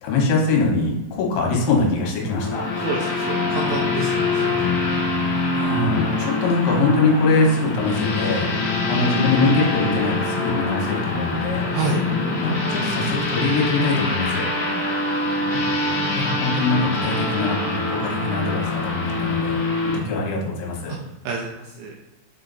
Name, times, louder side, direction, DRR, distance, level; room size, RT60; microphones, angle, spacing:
voice 1, 0.0-2.7 5.5-8.5 8.9-11.7 12.4-14.5 15.5-15.6 16.1-21.0, left 3 dB, 75° left, -1 dB, 3.3 m, -23 dB
sound 1, 2.2-20.0, left 2 dB, 90° left, 1.6 m, -24 dB
voice 2, 2.8-4.7 6.1-6.3 11.7-12.0 14.5-14.9 20.9-21.0 21.3-21.9, right 3 dB, 85° right, 0 dB, 2.5 m, -29 dB
7.2 x 3.7 x 4.0 m, 0.97 s
omnidirectional pair, 5.9 m